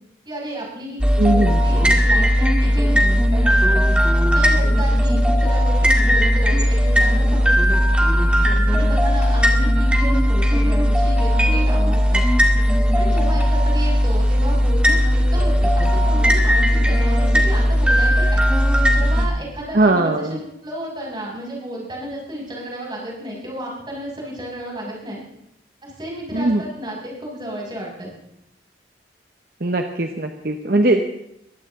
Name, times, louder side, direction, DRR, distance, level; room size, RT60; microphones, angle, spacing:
voice 1, 0.2-3.9 4.3-7.8 8.7-12.2 12.9-18.4 18.9-25.2 25.8-28.1, equal, 25° right, -3 dB, 6.3 m, -32 dB
sound 1, 1.0-19.3, equal, 5° right, 1.9 m, -17 dB
voice 2, 1.2-1.6 19.7-20.4 26.3-26.6 29.6-31.0, right 2 dB, 55° right, 5 dB, 1.1 m, -19 dB
21.5 x 16.0 x 3.8 m, 0.78 s
head